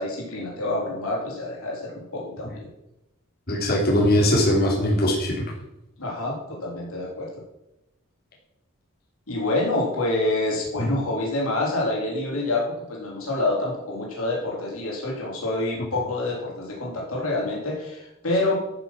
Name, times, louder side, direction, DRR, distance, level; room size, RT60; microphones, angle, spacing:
voice 1, 0.0-2.7 6.0-7.3 9.3-18.5, left 2 dB, 85° left, -3 dB, 4.2 m, -27 dB
voice 2, 3.5-5.3 10.8-10.9, left 1 dB, 45° left, -4 dB, 3.5 m, -20 dB
14.0 x 6.7 x 6.0 m, 0.90 s
head